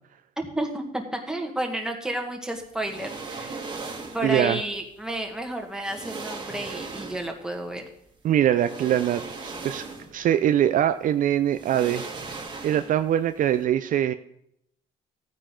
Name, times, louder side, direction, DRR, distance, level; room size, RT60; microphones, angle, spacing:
voice 1, 0.4-3.6 4.1-7.8, right 1 dB, 5° right, 2 dB, 1.8 m, -31 dB
sound 1, 2.8-4.3 5.4-5.5 5.8-7.4 8.5-10.2 10.6-10.7 11.5-13.1 13.4-13.6, right 3 dB, 25° right, 1.9 m, -37 dB
voice 2, 4.2-4.6 8.2-9.8 10.1-14.1, right 11 dB, 55° right, 10 dB, 0.5 m, -23 dB
14.5 x 9.1 x 3.8 m, 0.73 s
cardioid pair, 110°, 17 cm